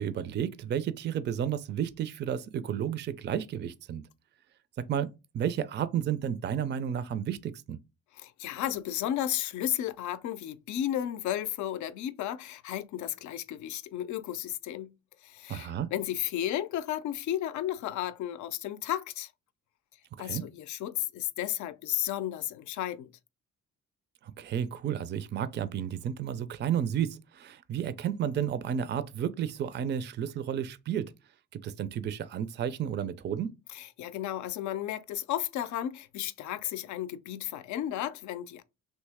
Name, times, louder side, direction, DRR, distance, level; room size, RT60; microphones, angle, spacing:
voice 1, 0.0-4.0 4.9-7.8 15.5-15.9 20.2-20.4 24.2-31.1 31.5-33.6, right 9 dB, 35° right, 0.4 m, -32 dB
voice 2, 8.2-14.9 15.2-19.3 20.2-23.1 33.7-38.6, left 12 dB, 70° left, 0.5 m, -33 dB
3.1 x 2.8 x 3.4 m
cardioid pair, 90°, 30 cm